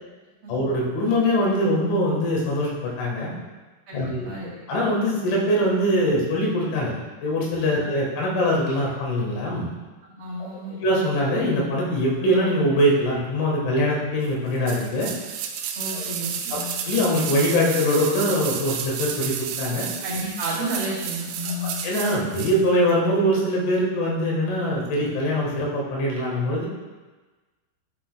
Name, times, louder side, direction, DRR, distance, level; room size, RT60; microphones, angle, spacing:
voice 1, 0.5-3.3 3.9-4.3 4.7-6.9 7.2-9.7 10.8-15.1 15.9-16.0 16.5-19.9 21.6-26.7, equal, 85° left, -3 dB, 4.0 m, -23 dB
voice 2, 3.9-4.5 7.8-7.9 10.1-10.8 15.7-16.7 20.0-21.7, right 1 dB, 45° right, -10 dB, 2.3 m, -31 dB
sound 1, 14.7-22.6 22.9-23.0, right 8 dB, 80° right, 2.6 m, -31 dB
11.0 x 6.2 x 2.2 m, 1.3 s
omnidirectional pair, 5.3 m